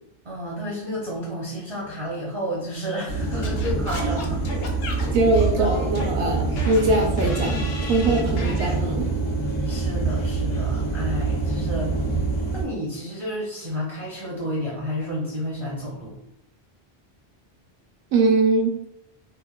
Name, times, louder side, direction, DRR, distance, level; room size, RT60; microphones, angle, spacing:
voice 1, 0.2-4.4 9.7-12.0 12.5-16.2, equal, 40° right, -5 dB, 0.5 m, -31 dB
sound 1, 3.1-12.6, right 3 dB, 85° left, 1.0 m, -25 dB
Singing / Scratching (performance technique), 3.4-8.7, left 2 dB, 60° left, 0.6 m, -35 dB
voice 2, 5.1-7.6 7.9-9.1 18.1-18.7, right 2 dB, 80° right, 2 dB, 0.8 m, -21 dB
3.0 x 2.0 x 2.2 m, 0.84 s
omnidirectional pair, 1.0 m